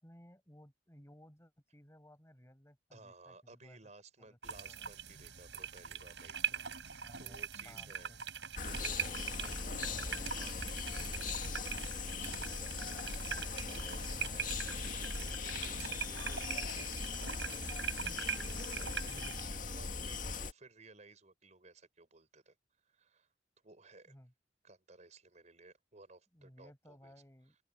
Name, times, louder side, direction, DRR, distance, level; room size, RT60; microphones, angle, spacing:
voice 1, 0.0-3.8 4.2-4.4 4.7-4.9 7.0-7.4 7.6-8.2 14.1-14.4 19.1-19.4 24.1-24.3 26.3-27.6, equal, 15° left, 6.1 m, -58 dB
voice 2, 2.9-8.1 8.6-11.5 11.8-13.3 13.6-22.6 22.8-23.3 23.6-24.1 24.6-27.1 27.5-27.6, right 3 dB, 40° right, 5.4 m, -59 dB
sound 1, 4.4-19.4, right 7 dB, 75° right, 6.2 m, -42 dB
sound 2, 8.6-20.5, left 4 dB, 45° left, 2.1 m, -40 dB
open air
head